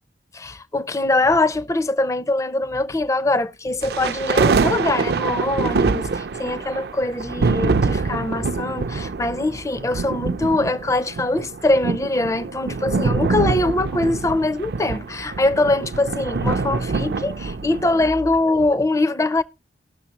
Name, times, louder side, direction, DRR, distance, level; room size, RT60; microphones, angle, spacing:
voice 1, 0.3-19.4, left 2 dB, 15° left, 0.4 m, -22 dB
sound 1, 3.8-18.1, right 4 dB, 60° right, 0.4 m, -24 dB
19.0 x 6.4 x 2.8 m
head